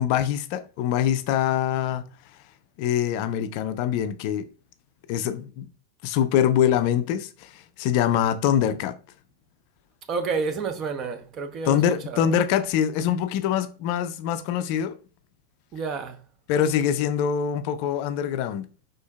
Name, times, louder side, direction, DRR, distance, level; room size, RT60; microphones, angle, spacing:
voice 1, 0.0-2.1 2.8-4.5 5.1-5.7 6.0-9.0 11.7-14.9 16.5-18.7, left 9 dB, 45° left, 0.4 m, -24 dB
voice 2, 10.1-12.3 15.7-16.2, right 5 dB, 30° right, 0.7 m, -30 dB
5.0 x 4.3 x 2.3 m
figure-of-eight pair, 90°, 0 cm